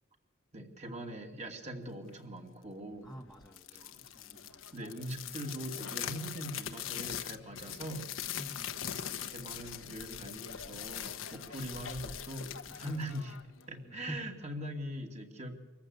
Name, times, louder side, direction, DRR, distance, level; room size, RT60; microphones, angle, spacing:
voice 1, 0.5-3.1 3.8-3.9 4.7-8.1 9.0-13.3 13.7-15.5, right 1 dB, 35° right, 3 dB, 2.6 m, -42 dB
voice 2, 3.0-4.8 8.4-9.0 12.7-13.2 13.8-14.4, equal, ahead, 0 dB, 1.1 m, -47 dB
sound 1, 3.4-13.8, left 9 dB, 80° left, 1.2 m, -42 dB
25.0 x 14.5 x 8.1 m, 1.2 s
head